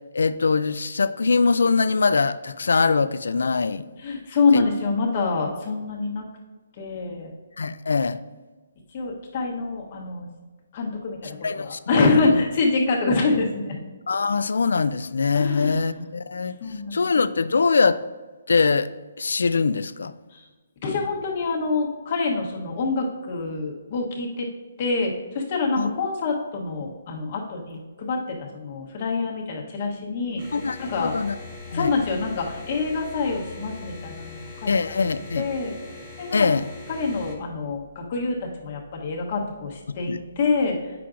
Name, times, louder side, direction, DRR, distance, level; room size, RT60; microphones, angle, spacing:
voice 1, 0.1-3.8 4.5-4.7 7.6-8.2 11.4-11.8 12.2-12.5 14.1-16.6 16.9-18.0 18.5-18.9 19.2-20.1 25.8-25.9 30.5-31.4 31.7-31.9 34.7-35.4 36.3-36.7 40.1-40.2, left 4 dB, 85° left, 14 dB, 0.3 m, -22 dB
voice 2, 4.0-6.3 6.8-7.3 8.9-10.3 10.7-13.8 15.3-15.8 16.6-17.0 20.3-20.5 20.8-24.5 24.8-30.4 30.8-31.1 31.7-34.7 35.4-35.7 36.2-36.5 36.9-40.8, left 3 dB, 25° left, -1 dB, 1.0 m, -26 dB
sound 1, 30.4-37.3, left 4 dB, 5° right, 1.0 m, -41 dB
8.4 x 5.8 x 2.5 m, 1.3 s
hypercardioid pair, 180°, 0 cm